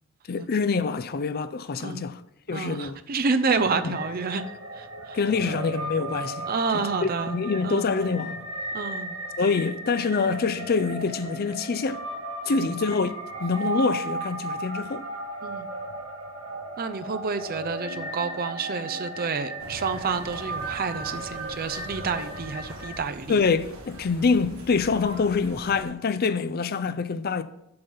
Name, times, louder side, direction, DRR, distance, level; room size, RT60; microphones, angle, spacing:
voice 1, 0.3-2.2 2.5-3.0 3.8-4.0 5.1-6.5 7.0-8.4 9.4-12.0 12.5-15.0 23.3-27.4, left 4 dB, 50° left, 0.5 m, -25 dB
voice 2, 2.5-4.4 4.7-5.6 6.5-7.4 7.6-7.9 8.7-9.2 12.5-12.6 15.4-15.7 16.8-23.4 26.2-26.4, right 4 dB, 45° right, 0.6 m, -29 dB
sound 1, 3.5-23.0, right 2 dB, 75° right, 1.8 m, -36 dB
sound 2, 19.6-25.8, right 1 dB, 90° right, 1.5 m, -43 dB
7.8 x 5.7 x 5.4 m
head